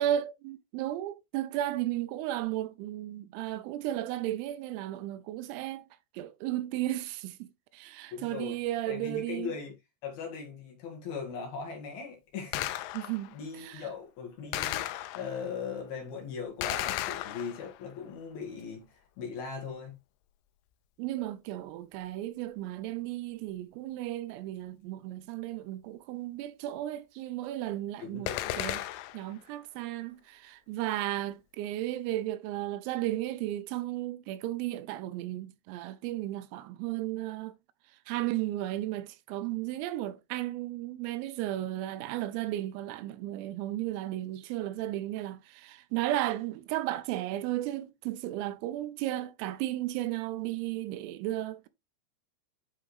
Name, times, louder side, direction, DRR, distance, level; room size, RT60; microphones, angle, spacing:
voice 1, 0.0-5.9 6.2-9.5 12.9-13.8 21.0-28.3 28.5-28.8 29.1-37.6 38.1-51.7, right 14 dB, 85° right, 3.5 m, -34 dB
voice 2, 8.1-8.6 8.9-9.8 10.0-12.9 13.3-20.0 28.0-28.6, left 6 dB, 60° left, 3.1 m, -39 dB
Gunshot gunfire, 12.5-13.3 14.5-15.5 16.6-17.9 28.3-29.3, left 14 dB, 85° left, 3.1 m, -35 dB
10.0 x 5.0 x 3.2 m
omnidirectional pair, 5.9 m